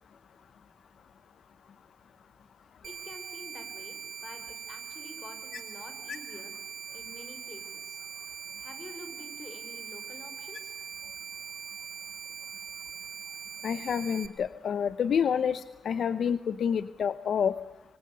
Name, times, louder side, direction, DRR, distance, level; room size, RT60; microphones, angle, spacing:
voice 1, 2.8-6.5 6.9-8.0 8.6-10.8, left 2 dB, 40° left, 9 dB, 5.5 m, -48 dB
sound 1, 2.8-14.3, right 8 dB, 65° right, 1.9 m, -42 dB
voice 2, 13.6-17.5, left 7 dB, 70° left, 13 dB, 0.9 m, -28 dB
26.0 x 24.5 x 6.8 m, 1.1 s
wide cardioid pair, 115°, 0 cm